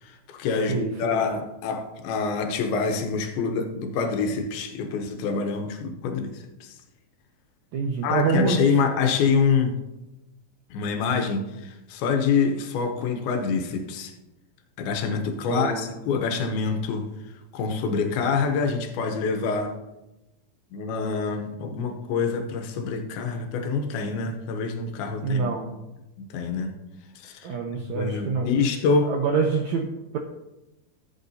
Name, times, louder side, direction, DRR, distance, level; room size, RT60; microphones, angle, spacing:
voice 1, 0.0-6.8 8.0-9.8 10.7-14.1 14.8-17.1 17.5-19.8 20.7-25.5 26.3-26.7 27.2-27.5 27.9-29.1, left 5 dB, 85° left, 2.9 m, -26 dB
voice 2, 0.7-1.2 7.7-8.8 15.5-15.9 25.2-25.7 27.4-28.5 29.0-30.2, right 5 dB, 80° right, 1.6 m, -26 dB
14.5 x 8.4 x 2.7 m
omnidirectional pair, 4.2 m